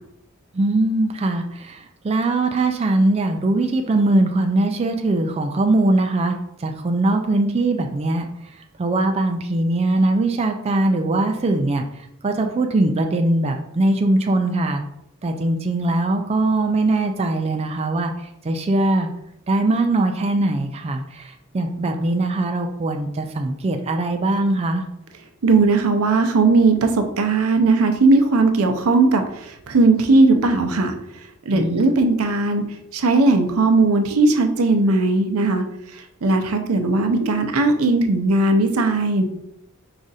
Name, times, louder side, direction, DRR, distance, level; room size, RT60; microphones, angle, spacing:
voice 1, 0.5-8.3 8.8-14.8 15.2-19.1 19.5-24.8 31.5-31.8, right 2 dB, 30° right, 4 dB, 0.3 m, -21 dB
voice 2, 25.4-30.9 31.4-32.7 32.9-35.6 35.9-39.2, right 3 dB, 85° right, 6 dB, 0.6 m, -18 dB
4.8 x 2.5 x 4.0 m, 0.79 s
head